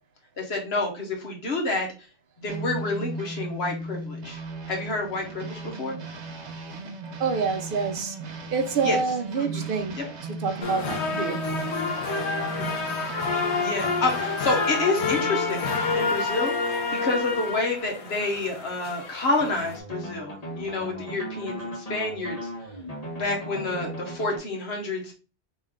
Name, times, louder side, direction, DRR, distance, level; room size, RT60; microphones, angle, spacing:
voice 1, 0.4-1.9 2.4-4.4 4.7-6.0 8.8-9.0 9.4-9.7 12.5-12.9 13.6-22.5 23.2-25.1, left 2 dB, 70° left, 1.4 m, -29 dB
sound 1, 2.5-16.3, right 3 dB, 80° right, 1.1 m, -37 dB
voice 2, 7.2-8.1 8.5-10.0 10.4-11.4, right 5 dB, 60° right, 0.8 m, -27 dB
sound 2, 10.6-19.8, left 4 dB, 85° left, 1.0 m, -28 dB
sound 3, 19.4-24.4, equal, 35° left, 1.4 m, -37 dB
3.2 x 3.2 x 3.5 m
omnidirectional pair, 1.1 m